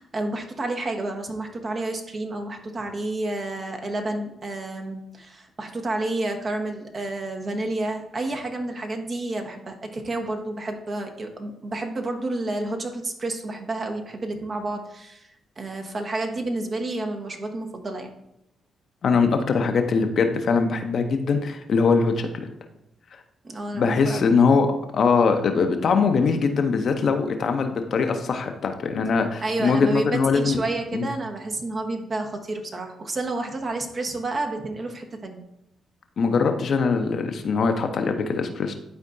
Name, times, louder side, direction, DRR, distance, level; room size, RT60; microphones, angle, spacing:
voice 1, 0.0-15.3 15.6-18.1 23.4-24.2 29.4-35.4, right 2 dB, 45° right, 4 dB, 1.2 m, -30 dB
voice 2, 19.0-22.5 23.7-24.7 24.9-30.6 30.9-31.1 36.2-38.7, left 5 dB, 55° left, 6 dB, 0.7 m, -22 dB
11.0 x 4.4 x 2.6 m, 0.84 s
hypercardioid pair, 40°, 0 cm